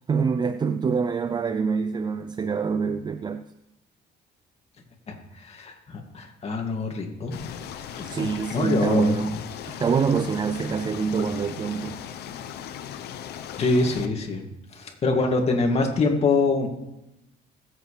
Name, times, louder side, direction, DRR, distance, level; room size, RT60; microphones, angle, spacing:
voice 1, 0.1-3.4 8.0-9.4 9.8-12.0, right 5 dB, 25° right, 0.4 m, -25 dB
voice 2, 5.1-7.6 8.0-9.3 9.7-9.8 13.6-16.7, left 3 dB, 40° left, 2.3 m, -25 dB
sound 1, 7.3-14.1, left 9 dB, 75° left, 0.9 m, -38 dB
20.5 x 8.2 x 3.3 m
cardioid pair, 110°, 17 cm